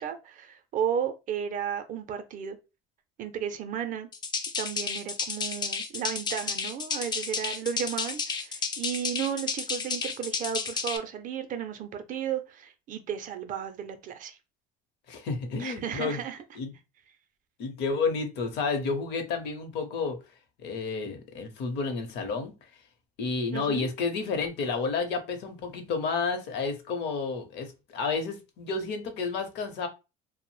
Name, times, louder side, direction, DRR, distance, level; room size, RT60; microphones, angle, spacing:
voice 1, 0.0-2.6 3.2-4.1 4.6-14.4 15.6-16.4 23.5-23.9, right 8 dB, 45° right, 0.4 m, -34 dB
sound 1, 4.1-11.0, left 5 dB, 20° left, 0.3 m, -32 dB
voice 2, 15.1-16.2 16.5-16.7 17.6-20.2 20.6-22.5 23.2-29.9, left 4 dB, 60° left, 0.7 m, -31 dB
2.6 x 2.0 x 3.0 m
cardioid pair, 135°, 20 cm